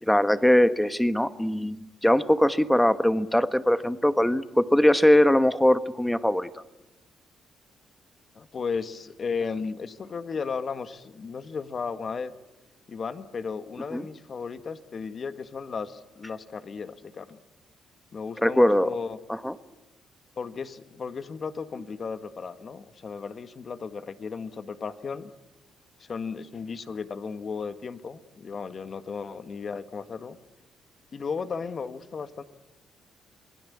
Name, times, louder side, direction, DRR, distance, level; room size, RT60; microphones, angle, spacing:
voice 1, 0.0-6.5 13.9-14.0 18.4-18.9 19.3-19.5, left 1 dB, 5° left, 12 dB, 1.4 m, -21 dB
voice 2, 8.3-12.3 12.9-17.4 18.1-19.2 20.4-25.3 26.0-30.4 31.1-32.4, left 5 dB, 45° left, 10 dB, 1.7 m, -35 dB
28.5 x 20.5 x 8.6 m, 1.0 s
cardioid pair, 90°, 0 cm